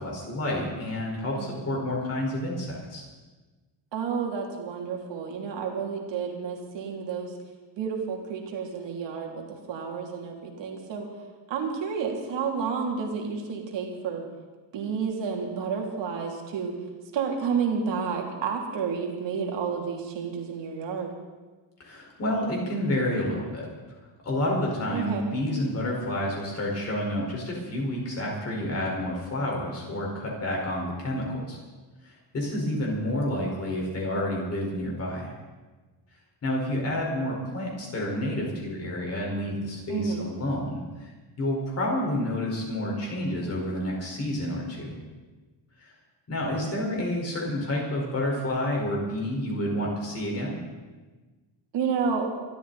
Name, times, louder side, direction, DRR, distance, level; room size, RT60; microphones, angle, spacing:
voice 1, 0.0-3.0 21.8-23.7 24.2-31.6 32.0-35.3 36.4-40.8 41.4-45.0 45.8-45.9 46.3-50.6, left 1 dB, 30° left, -2 dB, 4.9 m, -29 dB
voice 2, 1.3-1.7 3.9-7.3 7.8-11.1 11.5-14.2 14.7-16.7 17.1-21.1 24.9-25.2 39.9-40.3 51.7-52.3, right 6 dB, 60° right, 0 dB, 3.2 m, -30 dB
24.5 x 13.0 x 4.2 m, 1.3 s
cardioid pair, 170°, 49 cm